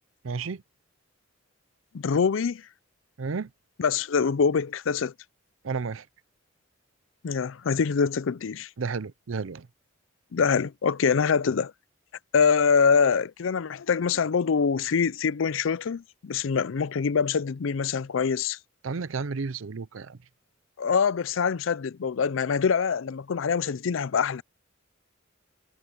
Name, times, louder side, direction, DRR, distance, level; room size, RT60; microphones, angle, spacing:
voice 1, 0.2-0.6 3.2-3.5 5.6-6.0 8.8-9.7 18.8-20.2, right 4 dB, 80° right, 0.6 m, -32 dB
voice 2, 1.9-2.7 3.8-5.1 7.2-8.7 10.3-11.7 12.3-18.6 20.8-24.4, left 6 dB, 70° left, 0.5 m, -24 dB
head